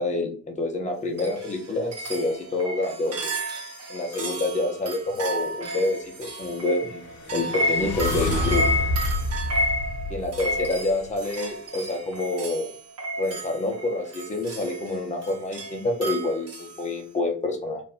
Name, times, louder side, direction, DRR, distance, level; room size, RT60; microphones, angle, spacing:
voice 1, 0.0-3.3 3.9-7.0 7.3-8.6 10.1-12.7 13.2-17.8, left 2 dB, 20° left, 2 dB, 1.1 m, -27 dB
sound 1, 1.2-16.8, right 1 dB, 40° right, 1.2 m, -31 dB
sound 2, 6.9-11.1, left 2 dB, 50° left, 0.9 m, -29 dB
3.2 x 2.6 x 4.2 m, 0.41 s
hypercardioid pair, 70°, 40 cm